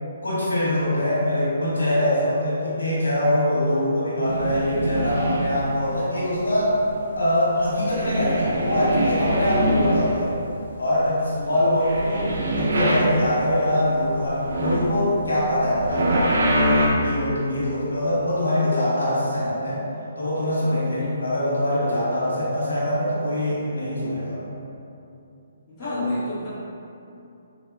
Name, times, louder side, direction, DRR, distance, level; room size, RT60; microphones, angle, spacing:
voice 1, 0.2-6.8 7.2-10.3 10.8-19.8 20.2-24.4 25.8-26.2, left 1 dB, 90° left, -8 dB, 1.2 m, -23 dB
sound 1, 4.2-5.8 6.4-7.3 7.6-10.5 10.8-13.6 13.9-16.9, right 1 dB, 70° right, 0.5 m, -24 dB
voice 2, 25.7-26.5, left 1 dB, 20° left, -14 dB, 1.3 m, -34 dB
3.7 x 2.8 x 2.2 m, 2.7 s
hypercardioid pair, 150°, 0 cm